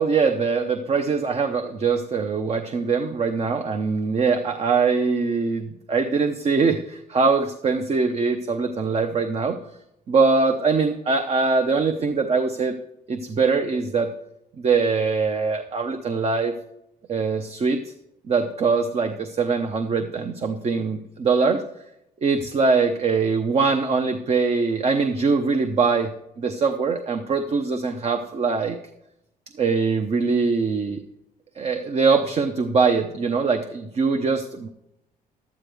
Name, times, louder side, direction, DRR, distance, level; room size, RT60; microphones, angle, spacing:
voice 1, 0.0-9.6 10.1-12.8 13.1-14.1 14.6-16.5 17.1-17.9 18.3-21.6 22.2-26.1 26.4-28.8 29.6-31.0 31.6-34.7, right 4 dB, 40° right, 7 dB, 0.8 m, -22 dB
12.0 x 9.6 x 3.5 m, 0.81 s
cardioid pair, 120°, 17 cm